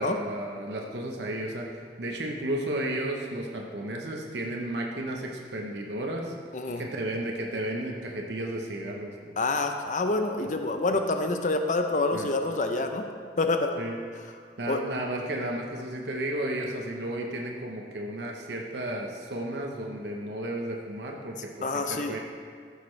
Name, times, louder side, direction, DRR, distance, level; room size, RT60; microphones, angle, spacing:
voice 1, 0.0-6.3 6.8-9.1 10.4-10.5 12.1-12.3 13.8-14.0 14.6-22.2, right 1 dB, 80° right, 0 dB, 0.9 m, -33 dB
voice 2, 6.5-6.8 9.4-13.1 13.4-13.7 14.7-14.8 21.6-22.2, left 2 dB, 45° left, 5 dB, 0.6 m, -27 dB
14.0 x 6.7 x 3.2 m, 2.1 s
head